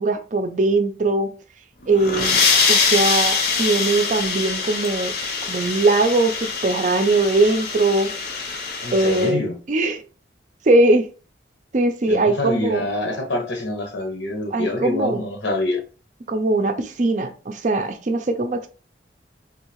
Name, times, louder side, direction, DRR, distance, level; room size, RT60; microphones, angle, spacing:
voice 1, 0.0-1.3 1.9-2.4 2.7-5.1 5.5-8.1 8.9-10.0 10.7-11.1 11.7-12.9 14.5-15.2 16.3-18.7, right 2 dB, 40° right, 0.4 m, -20 dB
sound 1, 1.8-9.3, left 5 dB, 55° left, 0.7 m, -23 dB
voice 2, 8.8-9.6 12.1-15.8, left 1 dB, 90° left, 1.2 m, -26 dB
3.7 x 2.7 x 2.9 m
head